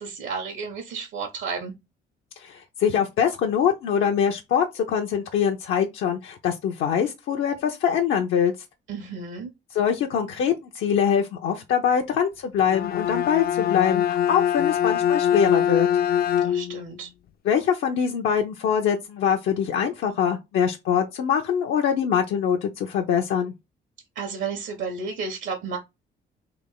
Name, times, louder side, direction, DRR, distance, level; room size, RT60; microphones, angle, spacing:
voice 1, 0.0-1.7 8.9-9.5 16.4-17.1 24.1-25.8, right 5 dB, 75° right, 1.2 m, -32 dB
voice 2, 2.4-8.5 9.7-15.9 17.4-23.5, left 8 dB, 80° left, 0.8 m, -23 dB
Bowed string instrument, 12.6-16.9, left 10 dB, 50° left, 0.4 m, -23 dB
3.5 x 3.0 x 4.0 m
cardioid pair, 90°, 20 cm